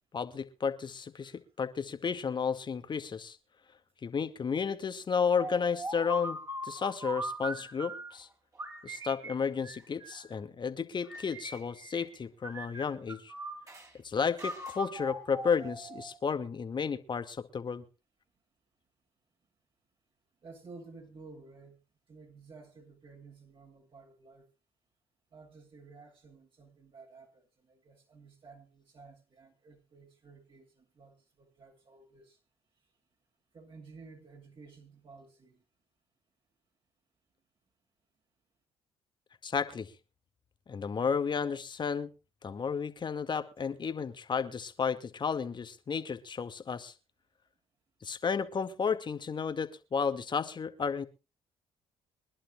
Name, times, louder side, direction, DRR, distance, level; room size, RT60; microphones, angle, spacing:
voice 1, 0.1-3.4 4.0-8.3 8.8-13.3 14.0-17.8 39.4-39.9 40.7-42.1 42.4-46.9 48.0-51.1, left 6 dB, 40° left, 2.0 m, -32 dB
sound 1, 5.4-8.1 8.6-10.4 11.0-12.2 12.4-13.9 14.4-16.2, right 1 dB, 25° right, 4.3 m, -40 dB
voice 2, 20.4-21.8 22.1-24.5 25.3-32.4 33.5-35.6, right 4 dB, 45° right, 7.2 m, -54 dB
24.5 x 11.5 x 2.3 m
supercardioid pair, 65°, 12 cm